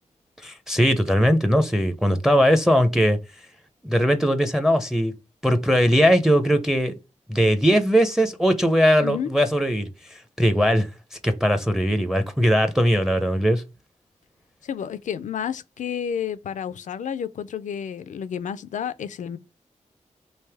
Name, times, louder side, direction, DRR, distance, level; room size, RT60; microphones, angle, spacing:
voice 1, 0.4-3.2 3.8-5.1 5.4-6.9 7.3-10.9 11.2-13.6, equal, 5° right, 0.5 m, -20 dB
voice 2, 9.0-9.3 14.6-19.4, left 8 dB, 75° left, 0.4 m, -30 dB
3.3 x 2.7 x 3.3 m
cardioid pair, 75°, 13 cm